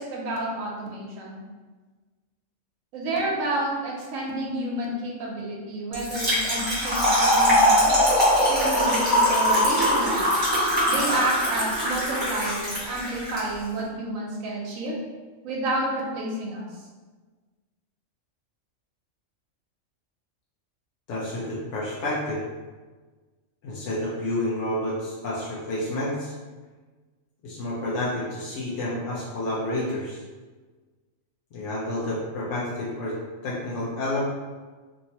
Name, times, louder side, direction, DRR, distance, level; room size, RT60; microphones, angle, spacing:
voice 1, 0.0-1.4 2.9-7.9 8.5-10.3 10.9-15.0 15.4-16.7, right 1 dB, 85° right, -2 dB, 1.0 m, -30 dB
Trickle dribble / Fill (with liquid), 5.9-13.4, equal, 20° right, 1.1 m, -22 dB
voice 2, 21.1-22.4 23.6-26.3 27.4-30.2 31.5-33.1 33.4-34.2, left 1 dB, 70° left, -6 dB, 0.9 m, -29 dB
2.8 x 2.7 x 2.8 m, 1.3 s
omnidirectional pair, 1.4 m